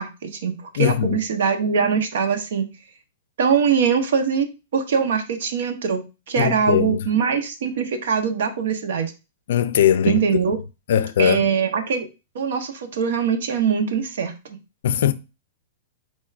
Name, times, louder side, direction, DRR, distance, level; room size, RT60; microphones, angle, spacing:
voice 1, 0.0-2.7 3.4-4.5 4.7-9.1 10.0-10.6 11.2-12.1 12.3-14.3, right 6 dB, 65° right, 0.8 m, -22 dB
voice 2, 0.8-1.2 6.4-7.1 9.5-10.2 10.9-11.5 14.8-15.1, left 10 dB, 65° left, 0.4 m, -20 dB
4.4 x 2.4 x 4.5 m
supercardioid pair, 170°, 0 cm